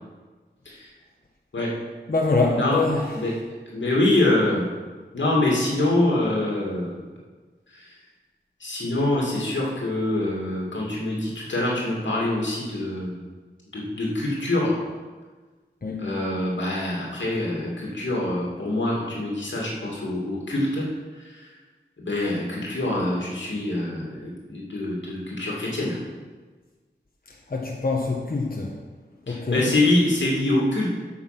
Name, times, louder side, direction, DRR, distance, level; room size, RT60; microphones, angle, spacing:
voice 1, 2.1-3.4 15.8-16.2 27.5-28.8 29.3-29.7, left 3 dB, 50° left, -2 dB, 1.3 m, -25 dB
voice 2, 3.7-4.7 5.1-6.9 7.7-7.9 8.6-13.2 13.7-14.8 16.0-20.8 22.0-26.0 29.3-30.9, left 1 dB, 90° left, -3 dB, 2.5 m, -25 dB
8.5 x 5.9 x 6.0 m, 1.4 s
wide cardioid pair, 60°, 19 cm